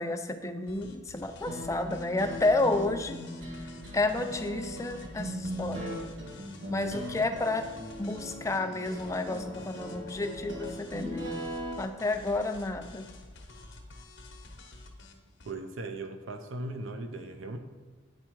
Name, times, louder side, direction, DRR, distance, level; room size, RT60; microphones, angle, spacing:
voice 1, 0.0-3.2 3.5-3.7 3.9-6.0 6.7-7.7 8.0-11.4 11.8-13.1, left 2 dB, 15° left, 6 dB, 0.4 m, -31 dB
sound 1, 0.7-15.5, left 2 dB, 65° left, 1.0 m, -50 dB
sound 2, 1.4-11.7, equal, 65° right, 1.6 m, -39 dB
voice 2, 15.5-17.6, right 2 dB, 80° right, 7 dB, 0.7 m, -38 dB
8.9 x 4.6 x 4.5 m, 1.4 s
head